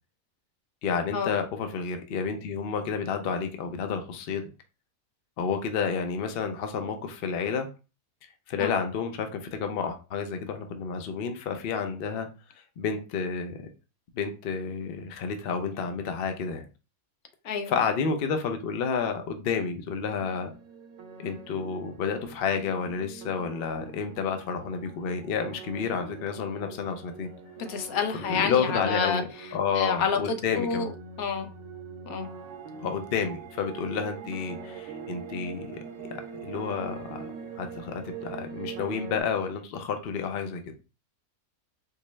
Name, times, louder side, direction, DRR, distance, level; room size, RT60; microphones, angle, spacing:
voice 1, 0.8-4.4 5.4-7.7 8.5-12.3 12.8-13.7 14.1-16.6 17.7-20.5 21.2-27.3 28.3-29.2 29.5-30.9 32.8-37.2 37.6-40.8, left 6 dB, 55° left, 6 dB, 0.6 m, -30 dB
sound 1, 20.0-39.2, right 6 dB, 65° right, 0.9 m, -43 dB
voice 2, 27.7-30.2 30.5-30.9 31.2-31.5 32.0-32.3, left 6 dB, 80° left, 5 dB, 1.1 m, -29 dB
4.5 x 2.1 x 3.1 m, 0.32 s
omnidirectional pair, 1.5 m